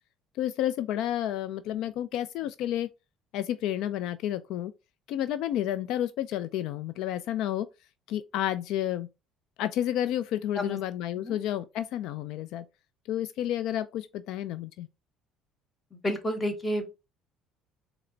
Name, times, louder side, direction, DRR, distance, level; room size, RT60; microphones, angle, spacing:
voice 1, 0.4-2.9 3.3-4.7 5.1-7.7 8.1-9.1 9.6-12.6 13.1-14.9, left 12 dB, 75° left, 0.3 m, -30 dB
voice 2, 15.9-16.9, equal, 20° left, 1.3 m, -30 dB
4.3 x 2.9 x 3.9 m
supercardioid pair, 100°, 0 cm